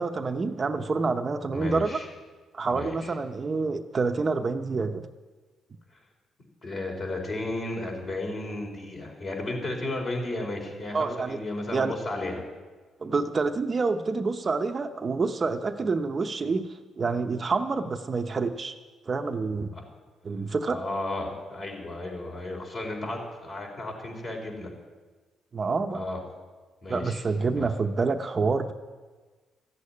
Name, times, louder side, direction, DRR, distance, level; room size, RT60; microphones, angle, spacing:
voice 1, 0.0-2.0 2.5-5.1 10.9-11.4 11.7-11.9 13.0-18.7 19.1-19.7 20.2-20.8 25.5-26.0 26.9-28.7, right 4 dB, 35° right, 6 dB, 0.8 m, -27 dB
voice 2, 1.5-2.1 2.7-3.1 6.6-12.4 19.7-19.8 20.6-24.7 25.9-26.2 26.8-27.2 27.5-27.7, left 2 dB, 45° left, 1 dB, 4.4 m, -34 dB
14.0 x 8.3 x 9.8 m, 1.4 s
cardioid pair, 90°, 0 cm